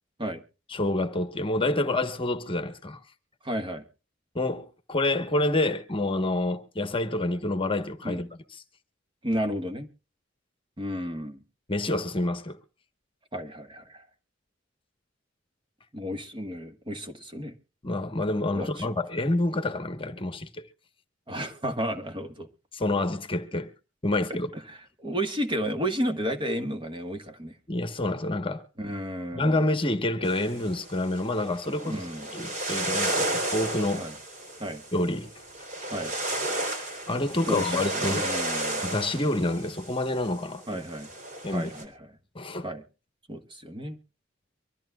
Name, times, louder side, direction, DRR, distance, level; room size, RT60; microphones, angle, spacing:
voice 1, 0.7-3.0 4.3-8.6 11.7-12.6 17.8-20.7 22.7-23.7 24.0-24.5 27.7-28.6 29.3-32.0 32.3-34.1 34.9-35.3 37.1-38.2 38.8-40.8 41.4-41.7 42.3-42.7, left 2 dB, 30° left, 1.2 m, -28 dB
voice 2, 3.4-3.8 8.0-8.2 9.2-9.9 10.8-11.4 13.3-14.0 15.9-17.5 18.5-18.9 21.3-22.5 24.3-27.5 28.8-29.6 31.8-32.3 34.0-34.1 34.6-34.8 35.9-36.1 37.4-38.8 40.7-41.1 41.5-41.9 42.6-42.8 43.3-44.0, equal, 25° right, 1.4 m, -32 dB
sound 1, 30.2-41.8, right 1 dB, 40° right, 3.6 m, -33 dB
24.0 x 13.5 x 2.3 m
head